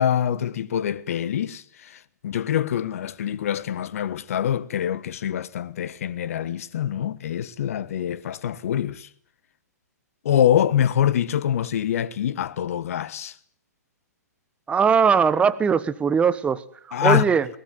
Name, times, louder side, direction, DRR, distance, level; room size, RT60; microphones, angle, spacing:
voice 1, 0.0-9.1 10.2-13.3 16.9-17.2, left 10 dB, 55° left, 1.3 m, -25 dB
voice 2, 14.7-17.5, right 6 dB, 15° right, 1.1 m, -20 dB
21.5 x 19.5 x 9.4 m
figure-of-eight pair, 115°, 9 cm